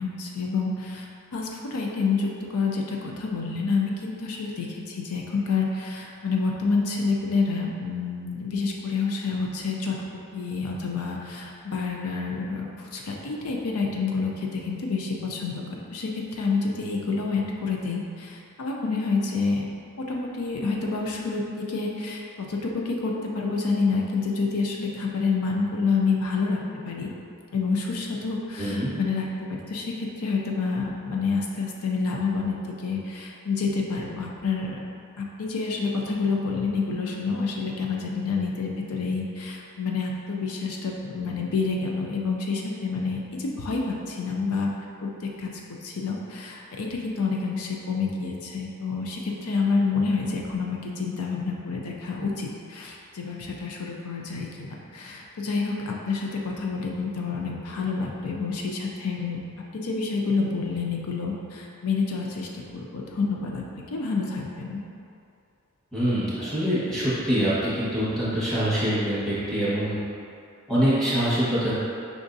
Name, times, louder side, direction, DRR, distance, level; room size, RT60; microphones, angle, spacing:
voice 1, 0.0-10.0 10.3-15.6 15.9-19.7 20.0-27.1 27.5-29.3 29.7-34.8 35.2-44.7 45.0-54.7 54.9-59.4 59.7-64.8, left 4 dB, 85° left, -1 dB, 0.5 m, -28 dB
voice 2, 28.6-28.9 65.9-70.0 70.7-71.8, equal, ahead, -12 dB, 1.2 m, -24 dB
5.1 x 3.5 x 2.6 m, 2.5 s
head